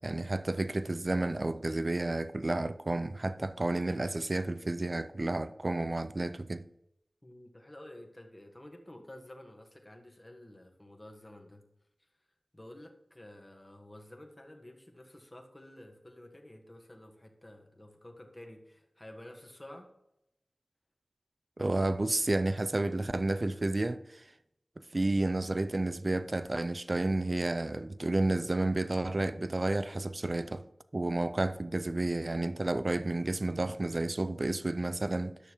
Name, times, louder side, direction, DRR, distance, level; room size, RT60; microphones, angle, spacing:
voice 1, 0.0-6.6 21.6-24.2 24.9-30.6 30.9-35.4, right 2 dB, 40° right, 0.4 m, -31 dB
voice 2, 7.2-11.6 12.0-12.3 12.5-19.9, left 1 dB, 25° left, 1.5 m, -51 dB
11.5 x 6.5 x 3.1 m
wide cardioid pair, 55°, 0 cm